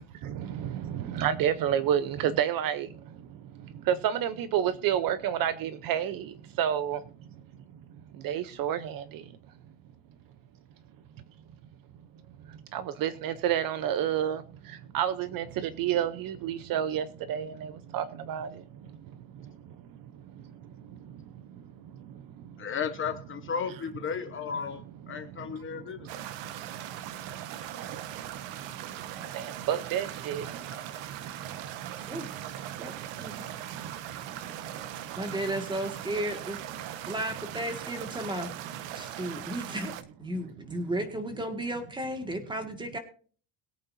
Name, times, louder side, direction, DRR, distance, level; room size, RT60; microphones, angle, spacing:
voice 1, 0.0-2.9 3.9-6.3 6.6-7.0 8.2-9.0 12.7-14.4 14.9-18.5 29.3-30.4, right 10 dB, 45° right, 13 dB, 0.8 m, -29 dB
voice 2, 22.6-24.8 25.1-26.1, left 7 dB, 25° left, 7 dB, 1.1 m, -34 dB
sound 1, 26.1-40.0, right 11 dB, 65° right, 1.3 m, -40 dB
voice 3, 35.2-36.6 37.1-38.5 38.9-39.9 40.2-43.0, right 1 dB, 10° right, 6 dB, 1.9 m, -34 dB
22.0 x 8.6 x 2.7 m, 0.41 s
cardioid pair, 175°, 49 cm